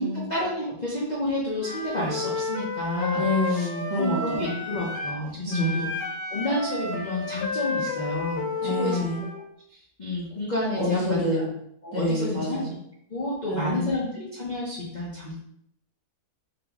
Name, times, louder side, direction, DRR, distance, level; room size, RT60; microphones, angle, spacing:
voice 1, 0.0-3.7 4.0-5.9 6.3-9.1 9.7-11.0 11.8-12.6 13.1-15.4, left 1 dB, 40° left, -6 dB, 0.6 m, -30 dB
Wind instrument woodwind instrument, 1.6-5.2 5.5-9.4, left 3 dB, 90° left, 1.2 m, -31 dB
voice 2, 3.1-4.6 5.5-6.0 8.6-9.2 10.7-11.5 11.9-12.7 13.5-13.9, left 1 dB, 30° right, -9 dB, 1.3 m, -27 dB
3.5 x 2.8 x 3.5 m, 0.74 s
omnidirectional pair, 1.7 m